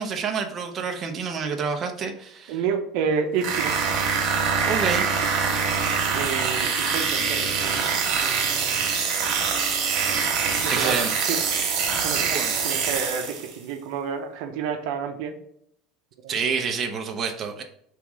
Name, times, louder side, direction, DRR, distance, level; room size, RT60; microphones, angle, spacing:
voice 1, 0.0-2.6 4.7-5.1 10.7-11.1 12.3-12.5 16.3-17.6, right 6 dB, 30° right, 3 dB, 0.8 m, -28 dB
voice 2, 2.5-3.8 5.2-5.5 6.1-7.9 8.2-8.8 10.6-11.4 12.0-15.3 16.2-16.4, right 6 dB, 70° right, 5 dB, 0.8 m, -30 dB
sound 1, 3.4-13.6, right 5 dB, 50° right, 1.9 m, -24 dB
5.9 x 3.6 x 4.7 m, 0.72 s
cardioid pair, 145°, 0 cm